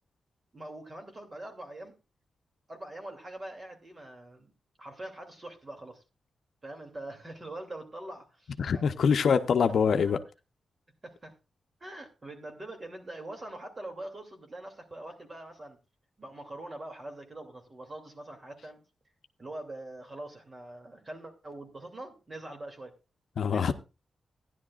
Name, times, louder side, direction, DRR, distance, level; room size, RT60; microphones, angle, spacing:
voice 1, 0.5-2.0 2.7-4.5 4.8-6.0 6.6-9.1 11.0-11.3 11.8-15.8 16.2-18.8 19.4-23.0 23.5-23.7, right 1 dB, 30° right, 2.6 m, -43 dB
voice 2, 8.6-10.2 23.4-23.7, left 6 dB, 70° left, 0.7 m, -24 dB
16.0 x 10.5 x 2.4 m
wide cardioid pair, 115°, 0 cm